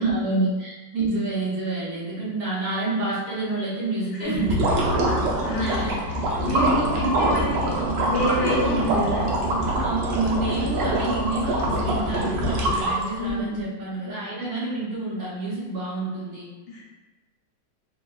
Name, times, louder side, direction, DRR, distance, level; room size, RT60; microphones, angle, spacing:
voice 1, 0.0-4.6 5.6-6.0 6.3-7.2 8.6-8.9 9.8-16.4, right 2 dB, 60° right, -7 dB, 1.2 m, -28 dB
sound 1, 4.3-13.3, right 1 dB, 80° right, 1.3 m, -24 dB
voice 2, 5.4-5.9 6.4-7.7 8.1-9.2 13.2-13.6 16.7-16.8, left 1 dB, 70° left, -5 dB, 1.4 m, -28 dB
3.7 x 2.1 x 2.2 m, 1.2 s
omnidirectional pair, 2.0 m